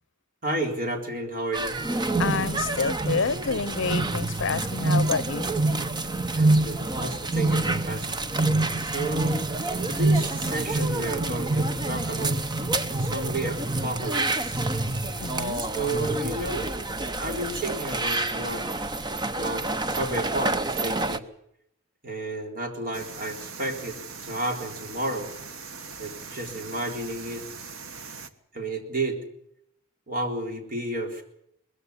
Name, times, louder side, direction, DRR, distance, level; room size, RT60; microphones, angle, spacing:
voice 1, 0.4-1.8 6.4-8.1 8.8-9.4 9.9-12.4 13.0-14.6 15.5-16.7 17.2-18.7 19.3-21.2 22.0-25.3 26.0-27.5 28.5-29.2 30.1-31.2, right 2 dB, 45° right, 3 dB, 3.9 m, -32 dB
sound 1, 1.5-21.2, right 2 dB, 20° right, 0.9 m, -27 dB
voice 2, 2.2-5.5 15.2-15.6, left 5 dB, 65° left, 18 dB, 0.8 m, -28 dB
sound 2, 22.9-28.3, right 5 dB, 85° right, 1.5 m, -41 dB
21.0 x 15.0 x 9.7 m, 0.75 s
head